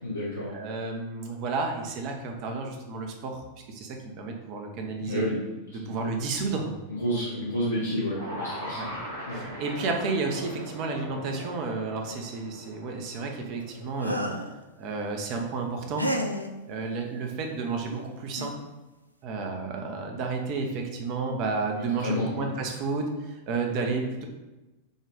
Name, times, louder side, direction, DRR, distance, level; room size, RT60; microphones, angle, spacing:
voice 1, 0.0-0.5 5.0-5.4 5.8-6.0 7.0-9.0 9.3-9.5 22.0-22.4, equal, 80° left, -6 dB, 0.7 m, -30 dB
voice 2, 0.5-5.3 5.7-6.7 8.8-8.9 9.3-14.2 14.8-16.1 16.7-18.5 19.2-24.2, right 4 dB, 40° right, 3 dB, 0.7 m, -31 dB
sound 1, 8.1-14.4, equal, 70° right, 1.3 m, -40 dB
sound 2, 14.0-14.5 16.0-16.5 17.9-18.0 18.4-18.6, equal, 90° right, 0.3 m, -30 dB
5.3 x 2.4 x 3.7 m, 1.1 s
figure-of-eight pair, 90°, 0 cm